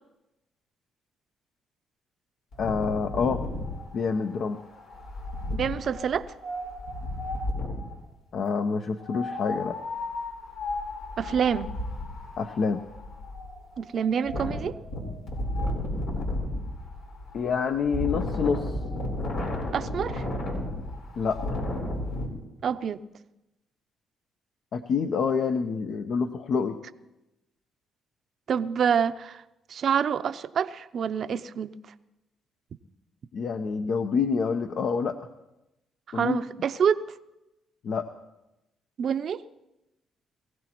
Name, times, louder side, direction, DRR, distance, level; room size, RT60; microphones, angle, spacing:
Wind, 2.5-7.9 9.0-22.3, left 1 dB, 90° left, 3.9 m, -33 dB
voice 1, 2.6-3.4 3.9-4.6 8.3-9.8 12.4-12.8 17.3-18.8 21.2-21.6 24.7-26.8 33.3-35.2 36.1-36.4 37.8-38.1, left 5 dB, 65° left, 7 dB, 0.7 m, -27 dB
voice 2, 5.5-6.3 11.2-11.7 13.8-14.7 19.7-20.3 22.6-23.0 28.5-29.4 29.7-31.7 36.1-37.0 39.0-39.4, right 7 dB, 60° right, 12 dB, 0.6 m, -27 dB
22.5 x 15.5 x 3.0 m, 0.95 s
cardioid pair, 90°, 0 cm